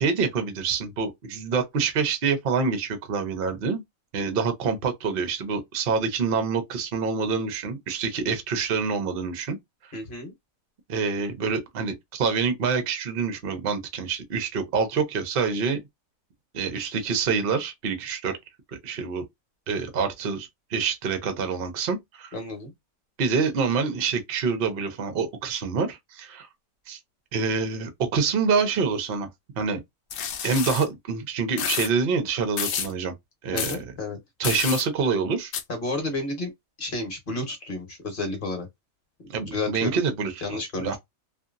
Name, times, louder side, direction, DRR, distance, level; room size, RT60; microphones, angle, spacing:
voice 1, 0.0-3.8 4.1-9.6 10.9-15.8 16.5-18.3 18.7-19.2 19.7-22.3 23.2-26.5 26.9-27.0 27.3-29.3 29.6-29.8 30.4-33.1 33.4-33.8 34.4-35.5 39.3-41.0, right 5 dB, 50° right, 0.8 m, -26 dB
voice 2, 9.9-10.3 22.3-22.7 33.5-34.2 35.7-36.5 36.8-38.7 39.4-40.0 40.4-41.0, left 2 dB, 40° left, 1.1 m, -31 dB
sound 1, 30.1-30.9 31.6-31.9 32.6-32.9 33.6-33.8 34.4-34.8 35.5-35.6, left 8 dB, 65° left, 0.7 m, -29 dB
2.8 x 2.5 x 2.5 m
omnidirectional pair, 1.5 m